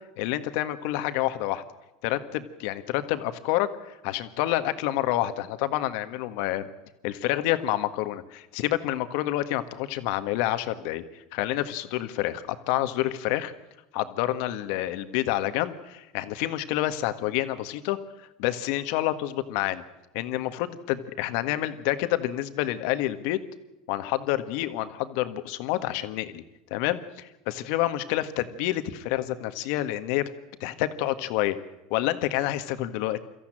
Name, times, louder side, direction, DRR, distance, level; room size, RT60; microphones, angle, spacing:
voice 1, 0.2-1.6 2.0-6.7 7.0-13.5 13.9-18.0 18.4-19.8 20.1-23.4 23.9-26.4 26.7-30.2 30.6-31.5 31.9-33.2, left 14 dB, 70° left, 10 dB, 1.6 m, -28 dB
23.5 x 14.5 x 9.1 m, 0.96 s
supercardioid pair, 120°, 3 cm